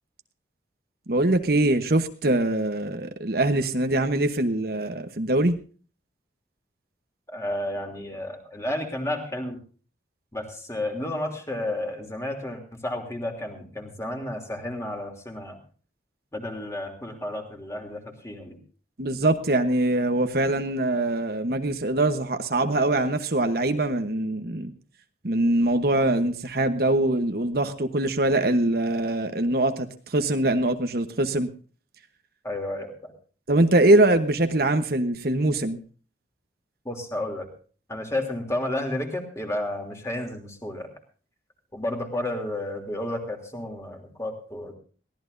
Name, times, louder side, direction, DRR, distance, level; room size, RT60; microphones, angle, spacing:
voice 1, 1.1-5.6 19.0-24.7 25.2-31.5 33.5-35.8, right 2 dB, 55° right, 1.1 m, -23 dB
voice 2, 7.3-9.6 10.3-15.6 16.3-18.6 32.4-33.1 36.8-37.5 37.9-40.9 41.7-44.8, left 1 dB, 15° left, 3.0 m, -32 dB
22.5 x 16.5 x 2.7 m
head